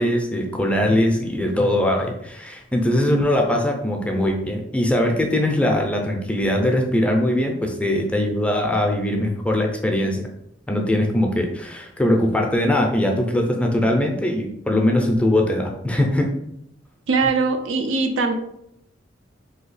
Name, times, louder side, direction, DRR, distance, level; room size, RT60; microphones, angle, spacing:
voice 1, 0.0-10.2 10.7-16.3, left 1 dB, 5° left, 1 dB, 0.4 m, -21 dB
voice 2, 17.1-18.3, right 4 dB, 85° right, 6 dB, 0.4 m, -21 dB
2.8 x 2.3 x 4.0 m, 0.76 s
head